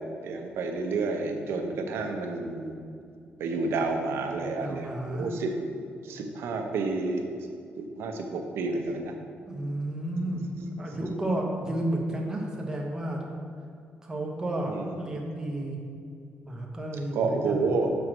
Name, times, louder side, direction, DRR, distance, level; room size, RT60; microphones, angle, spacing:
voice 1, 0.2-2.7 3.4-5.5 6.0-7.2 7.8-9.1 10.2-10.7 14.6-15.0 17.1-17.9, right 3 dB, 90° right, 4 dB, 0.8 m, -30 dB
voice 2, 4.3-5.3 9.5-10.4 10.8-13.2 14.0-15.8 16.4-17.8, right 1 dB, 15° right, -1 dB, 1.0 m, -32 dB
6.3 x 4.6 x 6.3 m, 2.4 s
wide cardioid pair, 170°, 4 cm